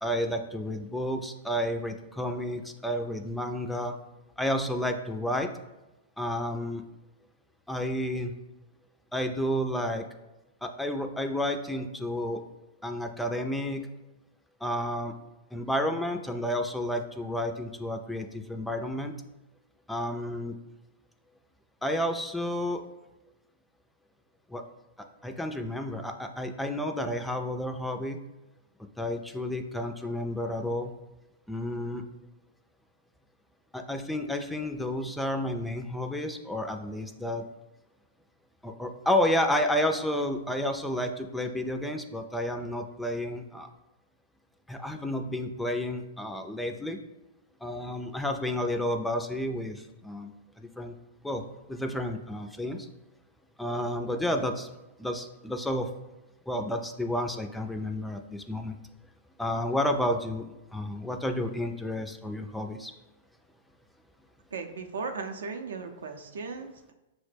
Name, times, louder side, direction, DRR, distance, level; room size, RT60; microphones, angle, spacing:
voice 1, 0.0-4.0 4.4-5.6 6.2-6.8 7.7-8.3 9.1-10.0 10.6-12.4 12.8-13.9 14.6-15.2 15.5-19.2 19.9-20.5 21.8-22.8 24.5-24.6 25.0-28.2 29.0-30.9 31.5-32.0 33.7-37.4 38.6-43.7 44.7-47.0 47.6-50.9 51.2-52.9 53.6-54.7 55.0-56.0 56.5-58.8 59.4-62.9, left 1 dB, 5° left, 5 dB, 0.3 m, -31 dB
voice 2, 64.5-66.9, right 4 dB, 80° right, 5 dB, 0.5 m, -37 dB
5.7 x 2.1 x 3.2 m, 1.0 s
hypercardioid pair, 125°, 0 cm